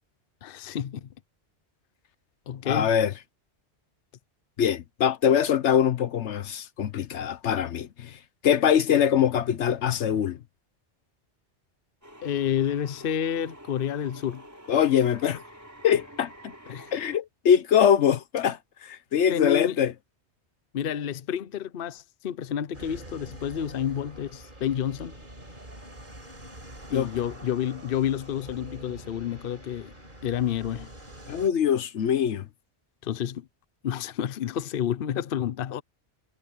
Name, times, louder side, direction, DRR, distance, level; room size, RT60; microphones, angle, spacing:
voice 1, 0.4-1.1 2.5-2.9 12.2-14.4 16.7-16.9 19.3-19.8 20.7-25.2 26.9-29.9 30.2-30.9 33.0-33.5 33.8-35.8, left 9 dB, 55° left, 0.9 m, -29 dB
voice 2, 2.6-3.1 4.6-8.2 8.4-10.4 14.7-15.4 15.8-16.5 16.9-19.9 26.9-27.1 31.3-32.5, left 9 dB, 80° left, 1.2 m, -23 dB
sound 1, 12.0-17.2, equal, 15° right, 4.8 m, -48 dB
sound 2, 22.7-31.5, right 1 dB, 45° right, 4.6 m, -45 dB
omnidirectional pair, 1.2 m